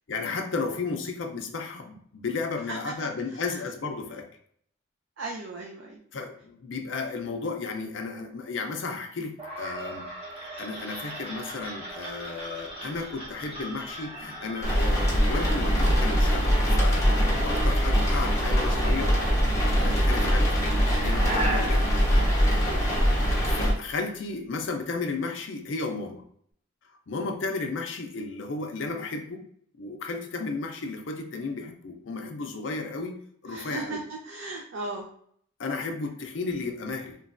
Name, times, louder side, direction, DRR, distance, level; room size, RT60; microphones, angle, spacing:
voice 1, 0.1-4.3 6.1-10.1 10.6-17.1 17.4-19.2 19.8-20.6 20.9-21.8 23.2-26.2 27.1-29.5 29.8-33.2 33.4-34.0 35.6-37.2, left 3 dB, 65° left, 4 dB, 0.5 m, -33 dB
voice 2, 5.2-6.0 19.8-20.1 22.6-22.8 33.5-35.1, right 2 dB, 65° right, 0 dB, 0.4 m, -37 dB
sound 1, 9.4-23.3, right 1 dB, 30° right, 1.0 m, -36 dB
sound 2, 14.6-23.7, equal, 15° left, 0.7 m, -23 dB
3.1 x 2.2 x 2.4 m, 0.64 s
head